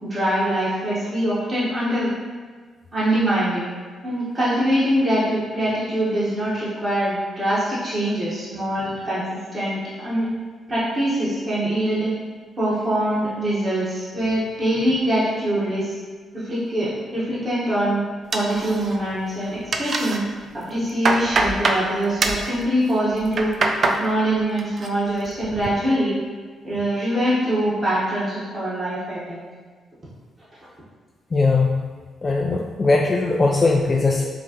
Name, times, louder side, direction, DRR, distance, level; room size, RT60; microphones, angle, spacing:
voice 1, 0.0-2.1 2.9-3.6 4.0-9.2 9.5-10.3 10.7-12.1 12.6-15.9 16.3-18.0 18.3-20.2 20.5-23.5 23.8-26.2 26.6-29.4, right 1 dB, 35° right, -9 dB, 1.4 m, -23 dB
sound 1, 18.3-19.2 19.4-20.2 20.6-21.8 22.2-22.5 23.1-24.0 24.4-24.9 25.3-25.7, right 3 dB, 50° right, 0.4 m, -23 dB
voice 2, 31.3-31.8 32.2-34.3, left 3 dB, 40° left, 0 dB, 0.3 m, -19 dB
4.8 x 2.3 x 3.0 m, 1.5 s
hypercardioid pair, 45°, 0 cm